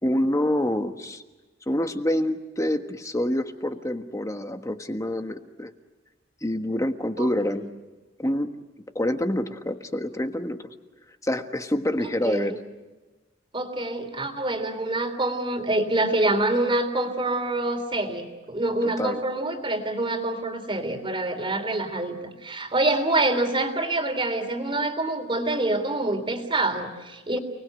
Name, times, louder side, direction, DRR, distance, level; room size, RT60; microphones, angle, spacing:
voice 1, 0.0-1.2 1.7-5.7 6.4-7.6 8.2-8.5 8.9-10.7 11.2-12.6 19.0-19.2, left 1 dB, 15° left, 7 dB, 1.4 m, -26 dB
voice 2, 7.2-7.6 12.2-12.6 13.5-22.2 22.4-27.4, right 2 dB, 25° right, 7 dB, 3.2 m, -26 dB
30.0 x 20.5 x 8.2 m, 1.2 s
head